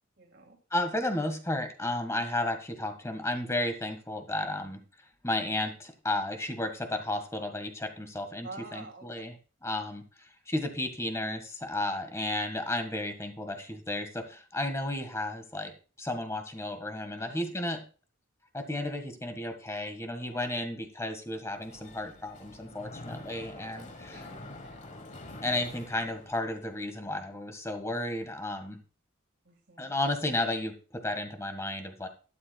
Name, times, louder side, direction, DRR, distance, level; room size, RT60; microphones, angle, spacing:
voice 1, 0.2-0.6 8.4-9.1 17.2-17.4 20.3-20.5 23.6-23.9 24.1-24.9 29.4-29.9, right 3 dB, 55° right, 4 dB, 2.6 m, -48 dB
voice 2, 0.7-4.8 5.2-9.3 9.6-15.7 16.0-17.8 18.5-24.2 25.4-28.8 29.8-32.1, left 1 dB, 15° left, 7 dB, 1.6 m, -33 dB
Mechanisms, 21.6-26.8, left 2 dB, 35° left, 1.2 m, -46 dB
12.5 x 12.0 x 2.3 m, 0.36 s
head